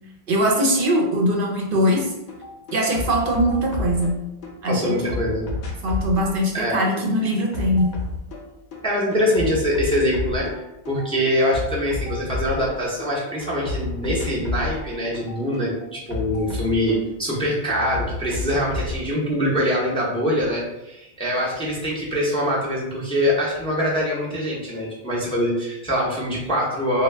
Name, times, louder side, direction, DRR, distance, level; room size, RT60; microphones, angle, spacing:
voice 1, 0.3-2.1 2.7-4.2 4.6-5.1 5.8-7.9, equal, 65° right, 0 dB, 0.7 m, -21 dB
sound 1, 1.9-2.0 2.3-4.5 4.8-8.8 9.1-10.6 10.9-13.1 13.4-17.4 17.7-19.0, left 2 dB, 55° left, 0.7 m, -31 dB
voice 2, 4.7-5.6 6.5-6.8 8.8-27.0, equal, 5° left, -5 dB, 0.5 m, -24 dB
3.2 x 2.2 x 3.2 m, 0.92 s
omnidirectional pair, 1.1 m